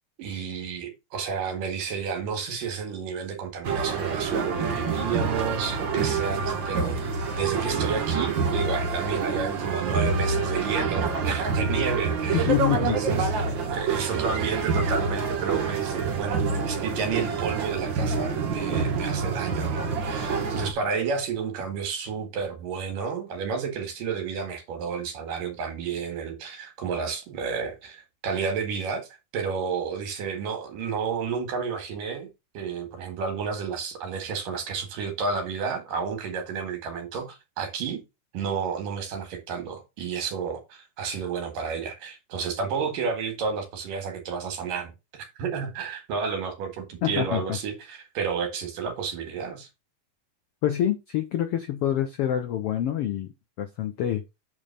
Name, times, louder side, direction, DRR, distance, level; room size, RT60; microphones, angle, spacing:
voice 1, 0.2-13.4 13.7-29.1 29.3-32.3 32.6-38.0 38.3-44.9 45.2-49.7, right 5 dB, 75° right, 3.5 m, -31 dB
sound 1, 3.6-20.7, right 5 dB, 55° right, 1.4 m, -27 dB
voice 2, 12.3-13.2 47.0-47.4 50.6-53.3 53.6-54.2, left 11 dB, 85° left, 1.3 m, -26 dB
8.8 x 3.4 x 5.8 m
omnidirectional pair, 3.9 m